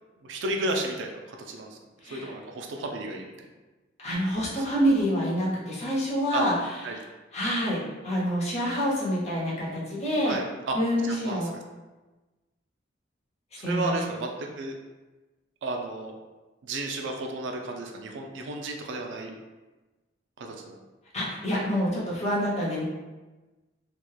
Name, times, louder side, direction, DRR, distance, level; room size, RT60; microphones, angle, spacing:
voice 1, 0.2-1.8 2.0-3.2 4.4-4.5 6.3-6.4 6.8-7.0 10.2-10.8 11.1-11.4 13.6-14.8 15.6-16.1 16.6-19.3 20.4-20.8, right 2 dB, 65° right, 2 dB, 0.3 m, -33 dB
voice 2, 2.0-2.3 4.0-7.0 7.3-10.3 10.7-11.5 13.6-14.0 21.1-22.8, equal, 35° left, -6 dB, 0.7 m, -27 dB
2.8 x 2.1 x 2.2 m, 1.2 s
head